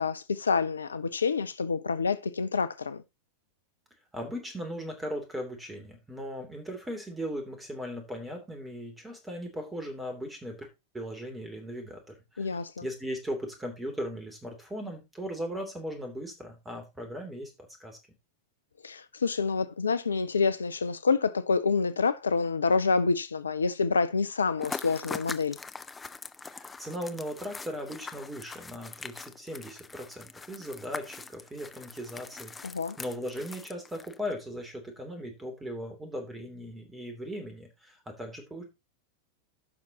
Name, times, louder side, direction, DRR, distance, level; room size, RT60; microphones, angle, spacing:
voice 1, 0.0-3.0 12.4-12.9 18.8-25.6 32.6-33.0, left 4 dB, 75° left, 0.5 m, -27 dB
voice 2, 4.1-10.7 10.9-17.5 17.8-18.0 26.4-38.6, equal, 10° right, 3.0 m, -38 dB
sound 1, 24.6-34.3, left 4 dB, 15° left, 0.6 m, -42 dB
15.0 x 5.9 x 2.9 m
figure-of-eight pair, 90°, 0 cm